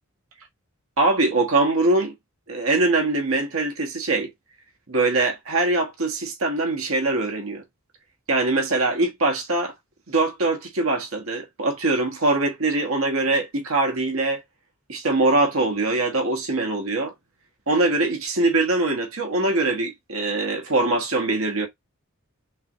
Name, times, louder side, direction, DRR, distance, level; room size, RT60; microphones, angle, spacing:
voice 1, 1.0-2.1 2.5-4.3 4.9-7.6 8.3-9.7 10.1-14.4 14.9-17.1 17.7-21.7, right 2 dB, 70° right, 1.5 m, -22 dB
5.5 x 2.6 x 3.1 m
head